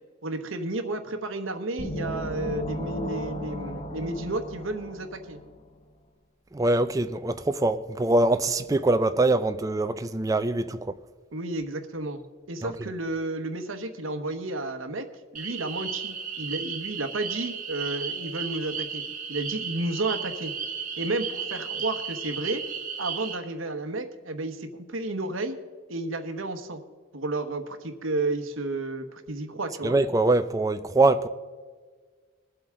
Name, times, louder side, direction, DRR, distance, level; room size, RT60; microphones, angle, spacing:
voice 1, 0.2-5.4 11.3-12.2 12.5-15.0 15.3-19.0 19.3-20.5 21.0-22.6 23.0-25.6 25.9-26.8 27.1-29.9, right 2 dB, 75° right, 1.1 m, -32 dB
sound 1, 1.8-5.6, equal, 30° left, 0.7 m, -34 dB
voice 2, 6.5-11.0 12.6-12.7 29.8-31.3, right 2 dB, 15° right, 0.4 m, -23 dB
sound 2, 15.3-23.4, right 6 dB, 40° right, 1.3 m, -34 dB
21.5 x 7.9 x 3.7 m
head